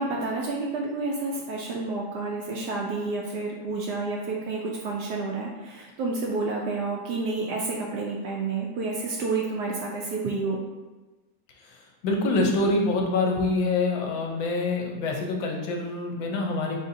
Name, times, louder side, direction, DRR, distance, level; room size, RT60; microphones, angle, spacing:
voice 1, 0.0-10.6, right 3 dB, 75° right, -1 dB, 1.0 m, -30 dB
voice 2, 11.6-16.8, left 2 dB, 80° left, 1 dB, 1.4 m, -26 dB
4.1 x 3.8 x 2.6 m, 1.2 s
omnidirectional pair, 2.1 m